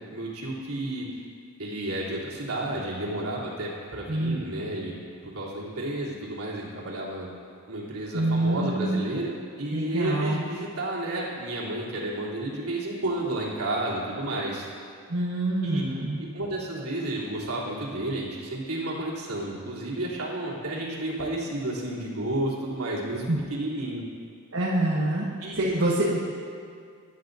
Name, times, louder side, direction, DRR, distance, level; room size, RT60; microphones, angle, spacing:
voice 1, 0.1-1.1 1.6-4.9 5.2-7.3 7.7-14.7 15.6-15.8 16.2-24.0 25.4-25.9, right 1 dB, 80° right, -6 dB, 3.2 m, -31 dB
voice 2, 4.1-4.4 8.1-8.9 9.7-10.4 15.1-16.2 23.3-23.4 24.5-25.2 25.5-26.2, right 1 dB, 65° right, -6 dB, 1.4 m, -25 dB
21.5 x 11.0 x 2.7 m, 2.2 s
head